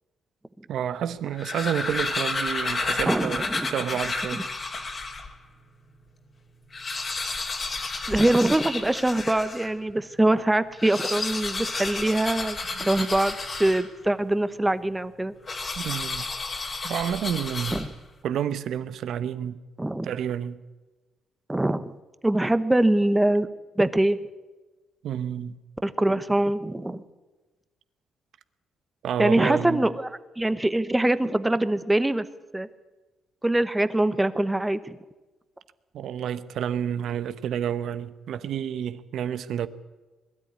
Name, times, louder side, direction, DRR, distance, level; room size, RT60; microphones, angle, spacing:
voice 1, 0.7-4.4 12.8-12.9 15.8-16.3 16.8-17.8 18.2-19.6 20.0-20.6 25.0-25.6 29.0-29.9 35.9-39.7, right 9 dB, 70° right, 1.0 m, -30 dB
sound 1, 1.2-5.3 5.9-6.0 6.2-6.3 6.6-9.7 10.7-14.1 15.4-18.1, left 3 dB, 35° left, 2.6 m, -31 dB
voice 2, 3.1-3.7 8.1-15.3 17.7-17.9 19.8-20.1 21.5-21.9 22.2-23.5 23.8-24.2 25.8-27.0 29.2-32.2 32.5-32.7 33.4-35.0, right 1 dB, 10° right, 1.1 m, -23 dB
21.0 x 13.0 x 9.5 m
cardioid pair, 90°, 0 cm